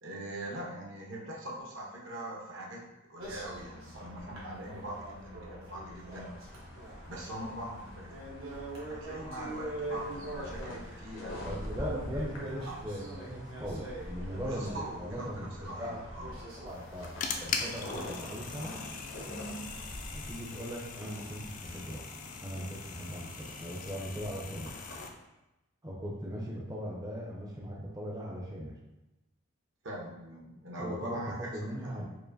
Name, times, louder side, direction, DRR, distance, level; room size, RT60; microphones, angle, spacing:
voice 1, 0.0-6.3 7.1-8.1 8.9-11.7 12.7-12.8 14.4-16.5 29.8-32.1, right 1 dB, 65° right, -2 dB, 0.8 m, -42 dB
sound 1, 3.2-20.4, right 1 dB, 85° right, 1.1 m, -44 dB
sound 2, 6.1-25.1, left 1 dB, 80° left, 0.8 m, -47 dB
voice 2, 11.4-16.0 16.6-17.1 17.4-18.8 20.1-22.0 22.4-24.7 25.8-28.7 30.8-32.1, equal, 20° right, -4 dB, 0.5 m, -39 dB
sound 3, 16.7-25.1, left 5 dB, 40° left, 0.3 m, -41 dB
4.7 x 2.5 x 2.6 m, 0.97 s
head